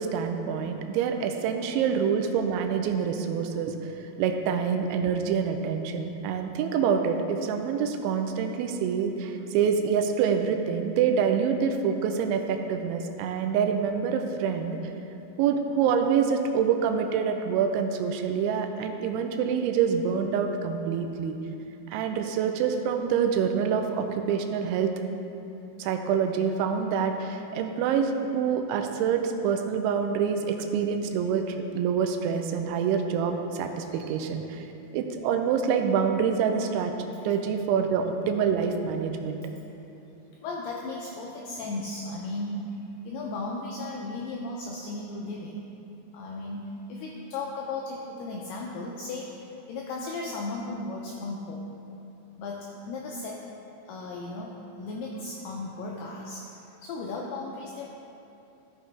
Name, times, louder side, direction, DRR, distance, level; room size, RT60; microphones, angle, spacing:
voice 1, 0.0-3.8 4.2-14.8 15.4-21.4 21.9-24.9 25.8-34.7 34.9-36.9 37.2-39.4, right 7 dB, 85° right, 5 dB, 3.0 m, -26 dB
voice 2, 40.3-42.8 43.1-45.7 46.1-51.8 52.4-53.5 53.8-57.9, left 2 dB, 85° left, -2 dB, 2.3 m, -36 dB
14.5 x 6.5 x 3.3 m, 2.9 s
omnidirectional pair, 5.3 m